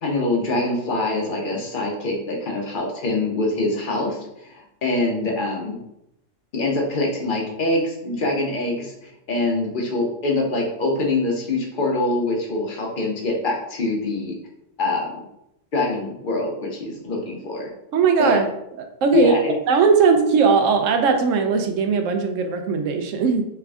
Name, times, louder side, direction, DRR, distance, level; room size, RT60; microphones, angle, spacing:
voice 1, 0.0-5.8 6.5-14.3 14.8-15.1 15.7-17.7 18.2-18.4 19.1-19.5, left 2 dB, 45° left, 0 dB, 1.0 m, -24 dB
voice 2, 17.9-18.5 18.8-19.4 19.7-23.4, right 5 dB, 85° right, 6 dB, 1.0 m, -19 dB
3.6 x 3.4 x 3.4 m, 0.81 s
omnidirectional pair, 1.3 m